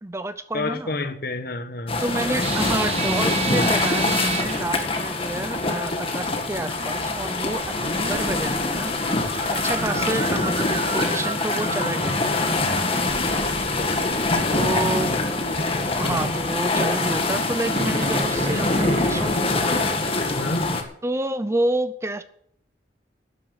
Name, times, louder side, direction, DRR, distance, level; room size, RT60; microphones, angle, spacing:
voice 1, 0.0-0.9 2.0-8.9 9.5-12.4 13.0-13.1 14.5-15.1 16.0-19.7 21.0-22.2, right 1 dB, 15° right, 0.6 m, -29 dB
voice 2, 0.5-2.2 14.3-14.8 16.0-16.3 20.3-20.7, left 2 dB, 55° left, 1.5 m, -30 dB
sound 1, 1.9-20.8, left 2 dB, 30° left, 2.0 m, -24 dB
sound 2, 2.4-5.1 6.8-7.2 7.5-8.3 8.8-14.5 17.7-19.2, right 3 dB, 35° right, 1.8 m, -31 dB
12.5 x 10.0 x 6.7 m
head